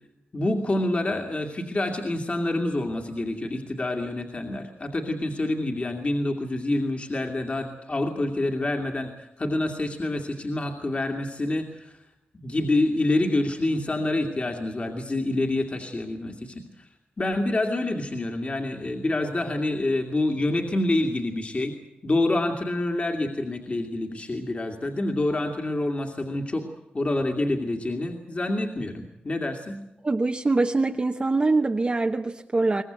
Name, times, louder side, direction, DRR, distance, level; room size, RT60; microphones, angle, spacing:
voice 1, 0.3-11.9 12.3-16.9 17.2-21.7 22.0-26.7 26.9-29.8, left 2 dB, 35° left, 3 dB, 2.4 m, -27 dB
voice 2, 30.0-32.8, right 3 dB, 30° right, 4 dB, 1.0 m, -23 dB
22.5 x 19.5 x 8.1 m, 0.85 s
wide cardioid pair, 95°, 4 cm